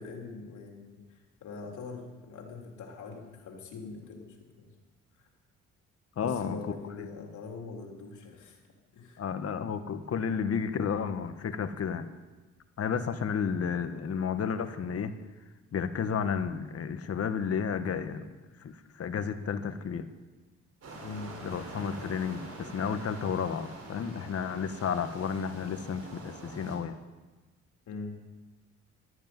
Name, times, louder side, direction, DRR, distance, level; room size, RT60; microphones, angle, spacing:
voice 1, 0.0-4.7 6.2-8.6 8.9-9.2 21.0-21.3 27.9-28.1, left 4 dB, 75° left, 1 dB, 3.5 m, -43 dB
voice 2, 6.2-6.7 7.0-7.1 9.2-12.1 12.8-15.1 15.7-20.1 21.4-27.0, left 6 dB, 50° left, 9 dB, 1.4 m, -32 dB
sound 1, 20.8-26.8, right 2 dB, 55° right, 5.2 m, -45 dB
13.0 x 11.5 x 9.5 m, 1.2 s
cardioid pair, 90°, 30 cm